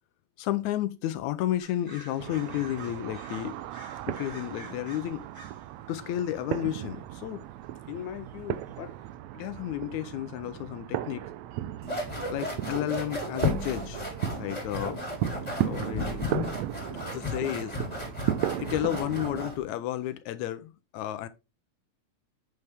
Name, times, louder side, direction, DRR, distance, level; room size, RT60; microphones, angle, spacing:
voice 1, 0.4-3.6 4.1-5.2 5.9-7.4 7.9-8.9 9.3-11.2 12.3-14.0 14.4-15.0 15.6-16.2 17.1-17.8 18.6-21.3, left 13 dB, 85° left, 2.0 m, -32 dB
sound 1, 1.6-5.7 6.0-6.4 8.0-8.1 8.3-8.4 8.7-8.8, right 2 dB, 15° right, 4.4 m, -49 dB
sound 2, 2.2-19.5, right 13 dB, 75° right, 1.8 m, -36 dB
sound 3, 11.8-19.6, left 3 dB, 15° left, 2.9 m, -34 dB
9.7 x 5.8 x 3.4 m
omnidirectional pair, 3.4 m